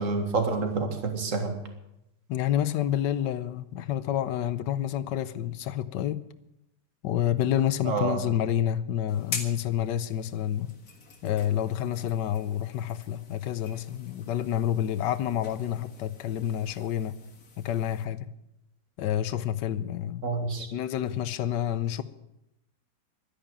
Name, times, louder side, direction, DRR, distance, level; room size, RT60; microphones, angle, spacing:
voice 1, 0.0-1.6 7.8-8.2 20.2-20.7, right 4 dB, 45° right, 5 dB, 2.2 m, -28 dB
voice 2, 2.3-6.2 7.0-10.7 11.2-17.1 17.6-18.3 19.0-20.3 20.7-22.0, left 11 dB, 75° left, 15 dB, 1.4 m, -28 dB
sound 1, 9.1-18.1, left 4 dB, 55° left, 2.1 m, -44 dB
12.5 x 10.5 x 8.9 m, 0.85 s
omnidirectional pair, 2.0 m